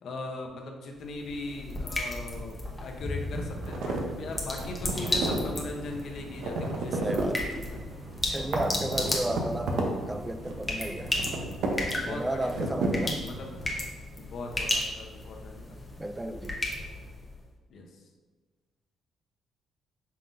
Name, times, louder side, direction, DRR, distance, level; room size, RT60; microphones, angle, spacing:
voice 1, 0.0-7.8 11.9-13.5 14.2-15.8 17.7-17.9, left 2 dB, 65° left, 2 dB, 0.7 m, -39 dB
sound 1, 1.0-17.4, left 1 dB, 20° left, 1.0 m, -35 dB
sound 2, 3.3-13.8, right 2 dB, 80° right, 0.7 m, -34 dB
voice 2, 7.0-7.5 8.2-11.1 12.1-13.2 16.0-16.6, right 1 dB, 15° right, 9 dB, 0.3 m, -33 dB
5.6 x 3.7 x 2.6 m, 1.3 s
cardioid pair, 90°, 0 cm